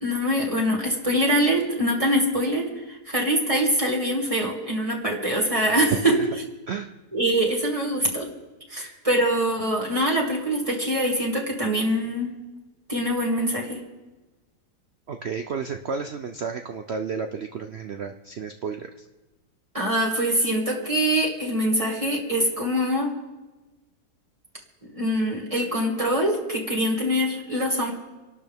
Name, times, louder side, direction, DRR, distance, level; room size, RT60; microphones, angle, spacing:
voice 1, 0.0-6.2 7.1-8.3 8.7-12.3 12.9-13.8 19.7-23.1 24.9-27.9, equal, 20° right, -2 dB, 2.3 m, -24 dB
voice 2, 15.1-19.0, right 5 dB, 85° right, 6 dB, 0.5 m, -32 dB
26.0 x 12.0 x 3.6 m, 1.2 s
omnidirectional pair, 2.0 m